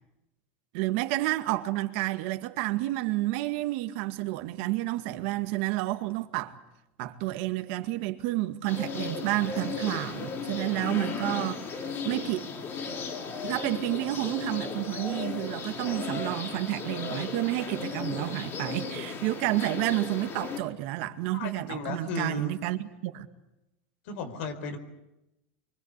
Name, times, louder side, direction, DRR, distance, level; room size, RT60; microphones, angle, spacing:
voice 1, 0.7-6.6 7.0-12.5 13.4-23.3, right 17 dB, 70° right, 2.1 m, -30 dB
sound 1, 8.7-20.6, left 5 dB, 40° left, 5.1 m, -35 dB
voice 2, 21.3-22.5 24.1-24.8, left 4 dB, 75° left, 4.5 m, -35 dB
25.0 x 24.5 x 8.4 m
supercardioid pair, 120°, 6 cm